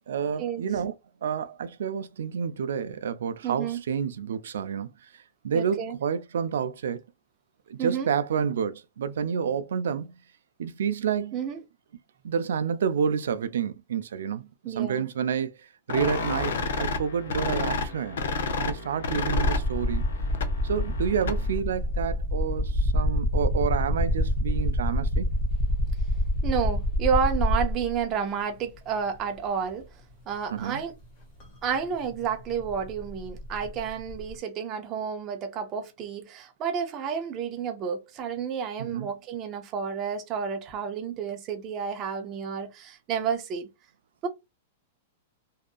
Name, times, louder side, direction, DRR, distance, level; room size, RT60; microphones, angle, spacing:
voice 1, 0.1-0.9 1.2-5.1 5.4-7.0 7.7-10.1 10.6-11.4 12.2-15.5 15.9-18.2 18.6-20.0 20.6-25.3 30.5-30.8 38.8-39.1, right 7 dB, 85° right, 0.4 m, -29 dB
voice 2, 3.4-3.8 5.5-6.0 7.8-8.1 11.3-11.6 14.6-15.0 26.4-29.9 30.3-30.9 31.6-43.7 44.2-44.3, right 7 dB, 20° right, 0.4 m, -30 dB
sound 1, 15.9-21.6, left 3 dB, 70° left, 0.5 m, -31 dB
sound 2, 19.3-28.0 29.2-29.3 31.4-31.5 31.7-34.3, left 1 dB, 30° left, 0.9 m, -27 dB
2.7 x 2.4 x 2.3 m
supercardioid pair, 175°, 0 cm